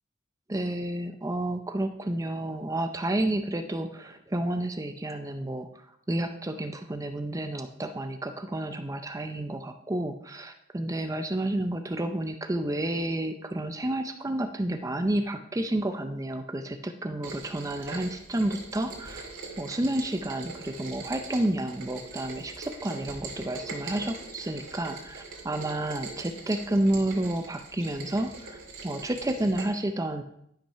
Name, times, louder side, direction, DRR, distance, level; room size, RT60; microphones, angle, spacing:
voice 1, 0.5-5.7 6.1-19.2 19.6-28.6 28.8-30.2, right 1 dB, 15° right, 7 dB, 0.5 m, -30 dB
Rain, 17.2-29.6, right 3 dB, 65° right, 2.5 m, -42 dB
11.5 x 5.8 x 5.6 m, 0.74 s
head